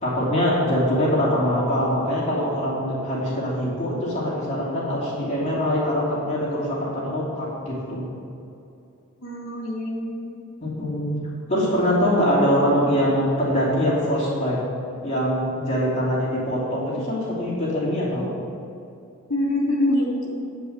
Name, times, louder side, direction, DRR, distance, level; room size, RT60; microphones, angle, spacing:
voice 1, 0.0-8.1 10.6-11.2 11.5-14.6 15.0-18.3, equal, 30° left, -8 dB, 2.7 m, -23 dB
voice 2, 9.2-10.3 19.3-20.4, left 1 dB, 75° left, -2 dB, 2.6 m, -25 dB
9.6 x 5.3 x 7.9 m, 2.7 s
head